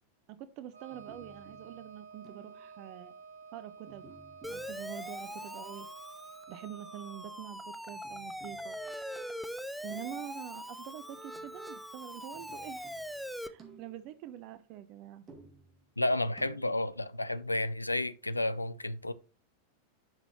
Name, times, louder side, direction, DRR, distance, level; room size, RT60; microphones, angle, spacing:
voice 1, 0.3-3.1 3.5-4.1 4.5-5.9 6.5-8.8 9.8-12.9 13.4-15.2, right 11 dB, 40° right, 0.6 m, -46 dB
Wind instrument woodwind instrument, 0.7-7.4, right 5 dB, 65° right, 2.1 m, -51 dB
sound 1, 0.9-2.8 3.9-5.6 7.9-9.4 9.9-10.6 11.1-11.9 12.3-14.3 15.3-16.9, right 4 dB, 25° right, 2.1 m, -58 dB
Siren, 4.4-13.5, equal, ahead, 0.6 m, -42 dB
voice 2, 16.0-19.1, left 1 dB, 85° left, 0.5 m, -31 dB
10.5 x 6.1 x 3.0 m
figure-of-eight pair, 90°, 0 cm